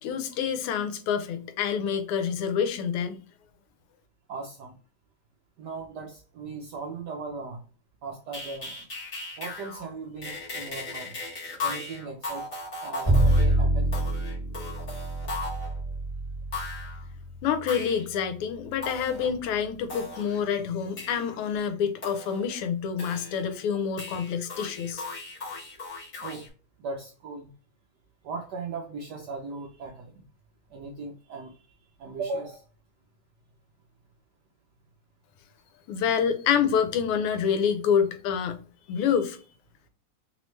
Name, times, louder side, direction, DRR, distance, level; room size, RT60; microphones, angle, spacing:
voice 1, 0.0-3.2 17.4-25.0 35.9-38.6 38.9-39.4, left 7 dB, 85° left, 1.5 m, -27 dB
voice 2, 4.3-4.7 5.6-7.6 8.0-8.8 9.4-11.2 11.6-12.5 12.8-14.0 25.3-25.9 26.2-26.4 26.8-27.5 28.2-30.2 30.7-31.7 32.0-32.6, right 4 dB, 75° right, 0.9 m, -38 dB
sound 1, 8.3-9.9 10.2-15.8 16.5-17.0 17.7-18.1 18.8-19.3 19.9-20.4 21.0-21.4 22.0-22.6 23.0-23.7 24.0-26.5, left 3 dB, 40° left, 1.8 m, -37 dB
Bowed string instrument, 13.0-19.2, right 1 dB, 15° left, 1.5 m, -27 dB
3.6 x 3.1 x 3.1 m
omnidirectional pair, 2.4 m